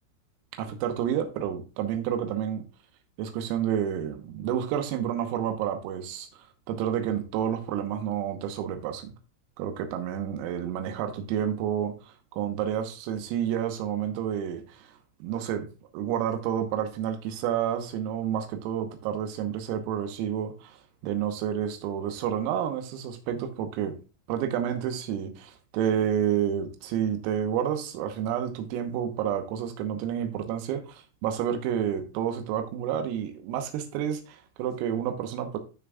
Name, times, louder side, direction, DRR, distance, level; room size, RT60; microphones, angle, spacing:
voice 1, 0.6-2.7 3.2-9.1 9.6-14.9 15.2-15.7 15.9-23.9 24.3-35.6, right 9 dB, 85° right, 7 dB, 3.6 m, -30 dB
13.0 x 6.1 x 2.3 m, 0.32 s
omnidirectional pair, 5.9 m